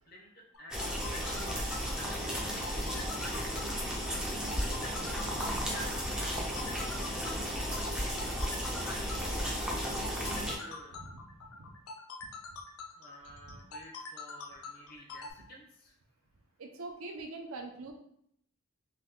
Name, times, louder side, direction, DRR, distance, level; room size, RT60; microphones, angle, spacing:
voice 1, 0.1-0.9 1.3-3.6 5.6-6.1 6.7-6.9 8.9-11.0 13.0-15.9, equal, 45° left, -1 dB, 0.7 m, -50 dB
sound 1, 0.5-15.3, left 4 dB, 80° left, 0.4 m, -45 dB
sound 2, 0.7-10.6, equal, 5° right, 0.4 m, -34 dB
voice 2, 4.6-5.1 7.1-7.2 10.9-11.2 11.6-11.7 13.5-13.6 16.6-17.9, right 3 dB, 75° right, 2 dB, 0.5 m, -45 dB
2.8 x 2.2 x 3.5 m, 0.71 s
head